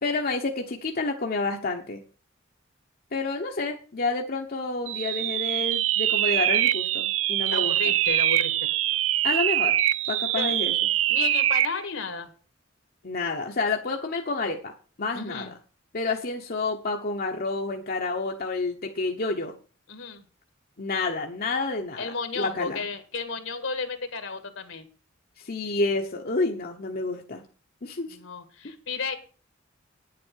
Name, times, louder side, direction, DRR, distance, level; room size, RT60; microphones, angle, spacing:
voice 1, 0.0-2.0 3.1-7.8 9.2-9.8 10.1-10.7 13.0-14.7 15.0-15.5 15.9-19.6 20.8-22.8 25.4-27.4 27.8-28.2 28.6-28.8, left 3 dB, 50° left, 2 dB, 1.0 m, -29 dB
sound 1, 4.9-11.8, right 13 dB, 70° right, 0.4 m, -24 dB
voice 2, 7.5-8.7 10.3-10.6 11.1-12.3 15.1-15.5 19.9-20.2 22.0-24.9 28.1-29.2, left 4 dB, 75° left, 10 dB, 1.8 m, -33 dB
9.6 x 7.7 x 6.4 m, 0.38 s
head